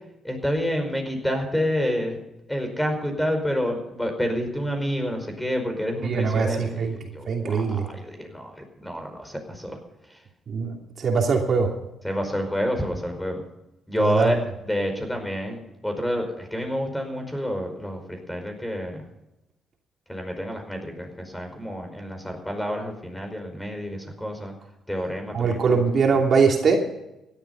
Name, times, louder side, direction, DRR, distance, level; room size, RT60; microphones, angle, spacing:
voice 1, 0.2-2.2 2.5-9.8 10.1-10.2 12.0-13.4 13.9-19.0 20.1-24.5 24.9-25.8, equal, 5° left, 4 dB, 5.0 m, -28 dB
voice 2, 6.0-6.9 7.3-7.9 10.5-11.7 14.0-14.3 25.3-26.8, right 5 dB, 50° right, 2 dB, 2.8 m, -22 dB
16.5 x 12.0 x 5.5 m, 0.91 s
cardioid pair, 90°, 0 cm